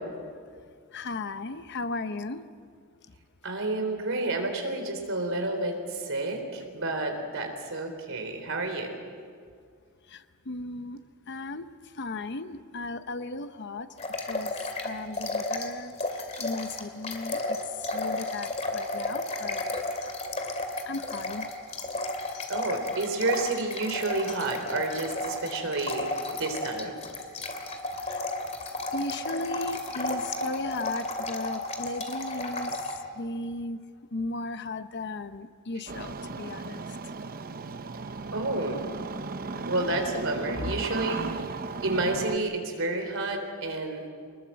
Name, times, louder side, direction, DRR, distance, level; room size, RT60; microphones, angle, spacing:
voice 1, 0.9-2.4 10.1-11.0 11.3-11.7 12.0-13.9 14.3-14.5 14.8-15.9 16.4-17.6 17.9-19.7 20.9-21.5 28.1-28.2 28.9-32.8 33.2-33.8 34.1-36.8, left 2 dB, 50° left, 11 dB, 0.8 m, -36 dB
voice 2, 3.4-8.9 22.5-26.9 38.3-38.8 39.7-41.2 41.8-44.0, right 2 dB, 60° right, 4 dB, 3.8 m, -30 dB
sound 1, 14.0-15.7 16.0-33.0, left 2 dB, 30° left, 2.4 m, -33 dB
Engine starting, 35.9-42.4, right 4 dB, 40° right, 0.8 m, -36 dB
24.0 x 20.5 x 7.6 m, 2.1 s
head